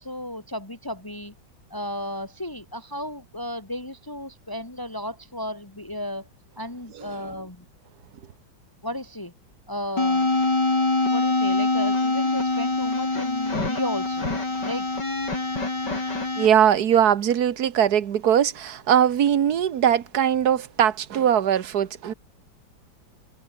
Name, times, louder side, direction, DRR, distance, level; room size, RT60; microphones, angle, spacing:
voice 1, 0.0-1.3 1.7-6.3 6.6-7.6 8.8-9.3 9.7-10.3 10.7-14.3 14.6-14.9, left 1 dB, 10° left, 3.0 m, -34 dB
sound 1, 10.0-16.5, left 2 dB, 60° left, 6.5 m, -24 dB
voice 2, 16.4-22.1, right 9 dB, 55° right, 1.6 m, -20 dB
omnidirectional pair, 2.1 m